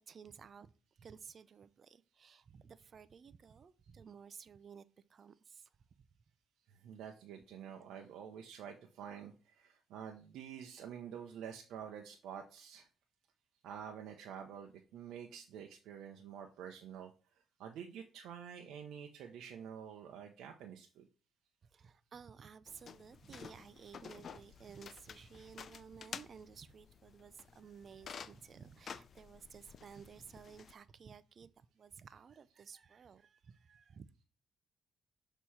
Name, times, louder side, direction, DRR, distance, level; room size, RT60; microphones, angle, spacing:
voice 1, 0.0-4.8 5.1-5.7 21.6-34.1, right 6 dB, 50° right, 0.5 m, -55 dB
voice 2, 6.7-12.9 13.6-21.1, right 8 dB, 85° right, 0.7 m, -48 dB
sound 1, 22.7-30.7, left 7 dB, 55° left, 0.4 m, -52 dB
6.5 x 3.0 x 5.6 m
cardioid pair, 90°, 0 cm